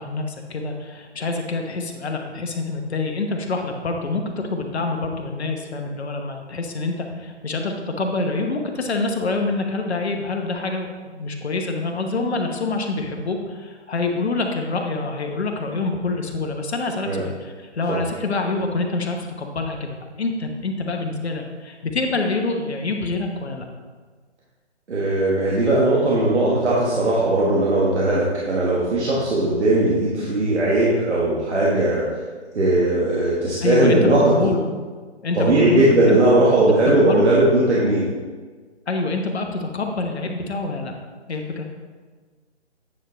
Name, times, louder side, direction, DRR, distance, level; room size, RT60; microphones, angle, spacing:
voice 1, 0.0-23.6 33.6-34.7 35.2-36.2 36.8-37.2 38.9-40.9 41.3-41.6, left 3 dB, 65° left, 3 dB, 1.2 m, -26 dB
voice 2, 24.9-32.1 32.5-34.5 35.3-38.1, right 2 dB, 70° right, -6 dB, 1.6 m, -18 dB
9.1 x 4.5 x 3.9 m, 1.4 s
figure-of-eight pair, 155°, 35 cm